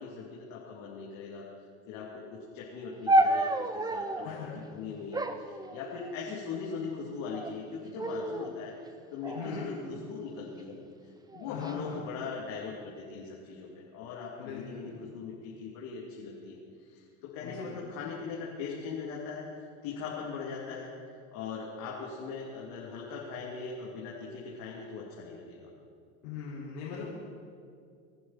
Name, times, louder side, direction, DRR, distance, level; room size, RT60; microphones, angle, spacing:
voice 1, 0.0-1.5 1.9-8.8 9.1-10.8 11.3-16.6 16.9-20.9 21.3-25.7, left 5 dB, 65° left, -4 dB, 3.1 m, -40 dB
sound 1, 3.1-4.3 5.1-6.3 7.1-7.6 8.0-8.5 9.2-10.5 11.3-11.7, right 1 dB, 10° right, 1.0 m, -30 dB
voice 2, 4.2-4.6 9.3-9.7 11.5-12.0 14.4-15.0 17.4-17.8 26.2-27.0, left 6 dB, 80° left, -10 dB, 5.6 m, -40 dB
29.0 x 11.0 x 4.4 m, 2.3 s
supercardioid pair, 95°, 35 cm